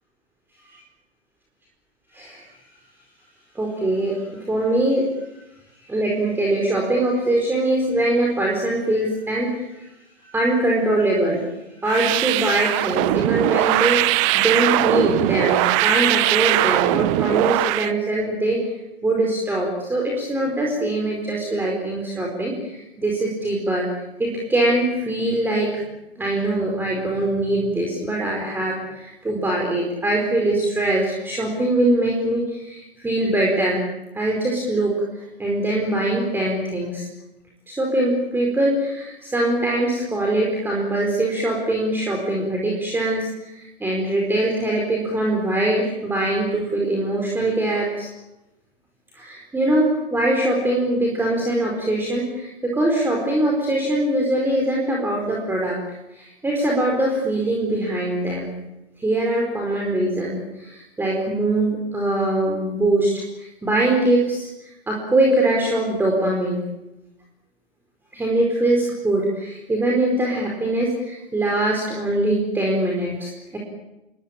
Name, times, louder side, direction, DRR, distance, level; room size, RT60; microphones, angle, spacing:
voice 1, 2.1-2.4 3.5-5.1 5.9-9.9 10.2-11.4 11.8-18.6 19.0-23.9 24.2-25.8 26.2-33.9 34.1-37.1 37.7-48.1 49.1-58.6 59.0-66.6 68.1-73.6, right 1 dB, 5° right, -1 dB, 4.5 m, -22 dB
sound 1, 11.8-17.9, right 18 dB, 30° right, 0.9 m, -20 dB
28.5 x 21.5 x 8.7 m, 0.97 s
figure-of-eight pair, 115°, 32 cm